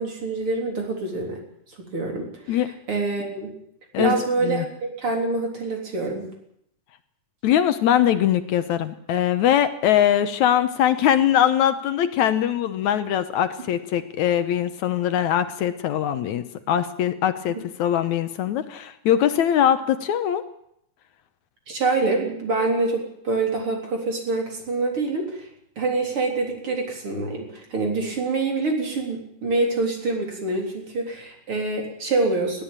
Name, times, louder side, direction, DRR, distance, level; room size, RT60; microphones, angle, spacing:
voice 1, 0.0-1.4 1.8-2.6 2.9-3.5 4.0-6.3 17.5-17.6 21.7-25.5 25.8-32.6, right 3 dB, 45° right, 2 dB, 4.5 m, -26 dB
voice 2, 3.9-4.7 7.4-20.4, left 10 dB, 75° left, 11 dB, 2.3 m, -22 dB
20.5 x 15.0 x 9.0 m, 0.74 s
omnidirectional pair, 3.6 m